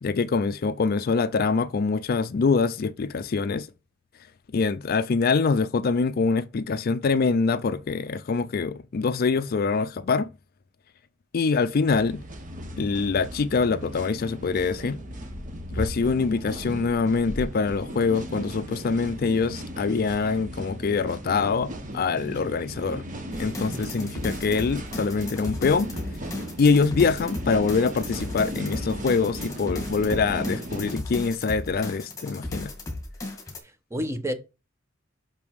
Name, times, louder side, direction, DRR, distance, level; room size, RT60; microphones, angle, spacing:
voice 1, 0.0-3.7 4.5-10.3 11.3-12.2 12.8-15.0 15.7-23.0 23.4-25.9 26.6-32.7, left 4 dB, 45° left, 0.4 m, -24 dB
sound 1, 11.9-31.0, equal, 40° right, 1.3 m, -36 dB
sound 2, 23.3-33.6, left 2 dB, 15° left, 2.0 m, -35 dB
voice 2, 23.7-24.1 33.9-34.3, equal, 15° right, 0.9 m, -30 dB
6.0 x 5.3 x 4.7 m
head